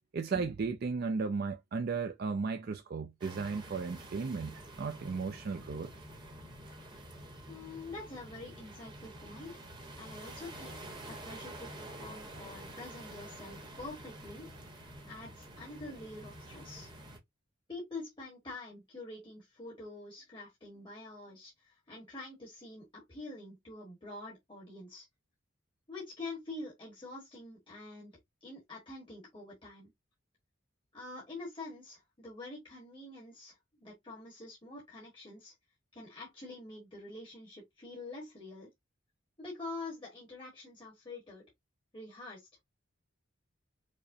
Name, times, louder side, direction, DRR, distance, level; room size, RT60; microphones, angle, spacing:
voice 1, 0.1-5.9, right 4 dB, 50° right, 0.4 m, -35 dB
sound 1, 3.2-17.2, right 1 dB, 25° right, 0.9 m, -48 dB
voice 2, 7.5-9.7 10.0-14.5 14.7-16.9 17.7-25.1 25.9-28.1 28.4-29.9 30.9-35.5 35.9-38.7 39.4-41.4 41.9-42.6, left 2 dB, 25° left, 1.2 m, -46 dB
4.8 x 2.1 x 2.6 m
head